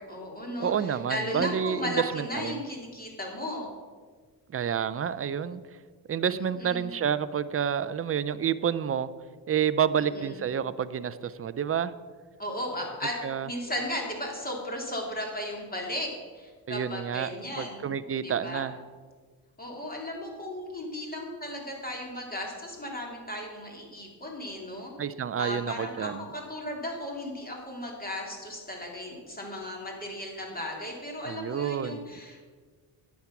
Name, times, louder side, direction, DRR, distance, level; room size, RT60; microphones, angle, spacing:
voice 1, 0.0-3.7 6.3-6.8 10.0-10.4 12.4-13.2 13.4-17.9 18.2-18.6 19.6-24.9 25.4-32.5, left 1 dB, 20° left, 0 dB, 2.9 m, -36 dB
voice 2, 0.6-2.6 4.5-5.6 6.1-9.1 9.5-11.9 13.2-13.5 16.7-17.3 17.6-18.8 25.0-26.2 31.2-32.1, right 8 dB, 30° right, 15 dB, 0.5 m, -29 dB
10.5 x 8.4 x 5.9 m, 1.5 s
cardioid pair, 105°, 45 cm